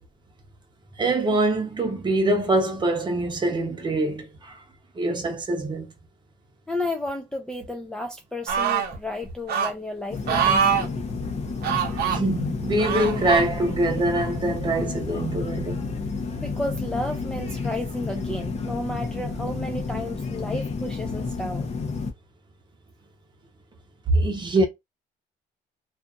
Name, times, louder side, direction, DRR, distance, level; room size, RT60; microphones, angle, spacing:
voice 1, 1.0-4.5 5.0-5.9 11.9-15.9 24.1-24.7, right 2 dB, 25° right, 0.9 m, -24 dB
voice 2, 6.7-11.0 16.4-21.7, left 1 dB, 5° left, 0.4 m, -32 dB
sound 1, 8.5-8.9 9.5-9.7 10.3-10.9 11.6-12.2 12.8-13.5 14.2-14.3, right 7 dB, 65° right, 0.8 m, -23 dB
sound 2, 10.1-22.1, left 4 dB, 40° left, 0.7 m, -31 dB
2.6 x 2.4 x 2.5 m
cardioid pair, 110°, 17 cm